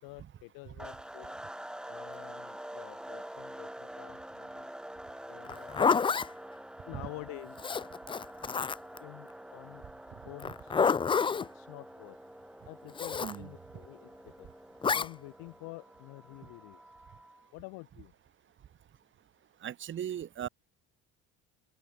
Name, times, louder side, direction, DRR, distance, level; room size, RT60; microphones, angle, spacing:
voice 1, 0.0-1.4 1.9-4.7 5.3-5.9 6.9-7.6 9.0-9.8 10.2-10.7 11.4-12.2 12.7-14.5 14.9-16.8 17.5-18.1, left 27 dB, 85° left, 4.9 m, -48 dB
sound 1, 0.8-17.5, right 1 dB, ahead, 1.0 m, -47 dB
Zipper (clothing), 5.4-6.3 7.6-9.0 10.4-11.5 13.0-13.4 14.8-15.1, left 5 dB, 15° left, 0.4 m, -28 dB
voice 2, 19.6-20.5, right 10 dB, 35° right, 1.0 m, -37 dB
cardioid pair, 115°, 33 cm